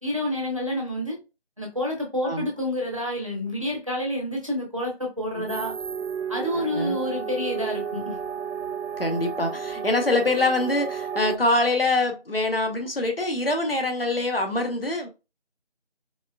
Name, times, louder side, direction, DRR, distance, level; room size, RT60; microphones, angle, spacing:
voice 1, 0.0-1.2 1.6-5.7 6.3-8.2, left 1 dB, 30° right, 0.8 m, -28 dB
sound 1, 5.5-11.4, right 7 dB, 85° right, 0.5 m, -32 dB
voice 2, 6.5-7.0 9.0-15.1, left 2 dB, 55° left, 0.9 m, -24 dB
4.3 x 2.4 x 2.3 m
figure-of-eight pair, 170°, 34 cm